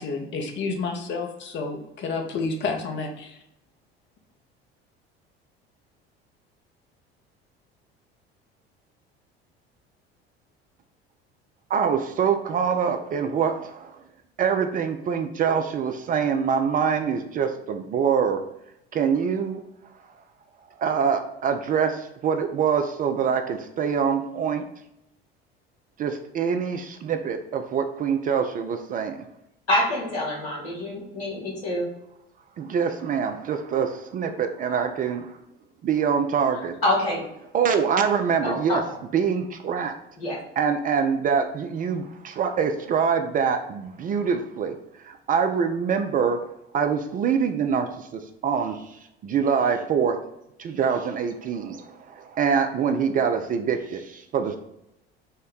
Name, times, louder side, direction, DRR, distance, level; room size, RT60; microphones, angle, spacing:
voice 1, 0.0-3.4, left 4 dB, 40° left, 3 dB, 0.8 m, -30 dB
voice 2, 11.7-14.0 14.4-18.4 18.9-19.6 20.8-24.6 26.0-29.2 32.6-35.4 35.8-36.8 37.5-38.8 39.1-39.9 40.6-44.8 45.0-46.4 46.7-50.2 50.6-54.6, right 6 dB, 30° right, 6 dB, 0.3 m, -25 dB
voice 3, 29.7-31.9 36.8-37.2 38.4-38.8 40.2-40.4, left 1 dB, 80° left, -3 dB, 1.3 m, -26 dB
4.2 x 2.1 x 3.6 m, 0.83 s
figure-of-eight pair, 60°, 30 cm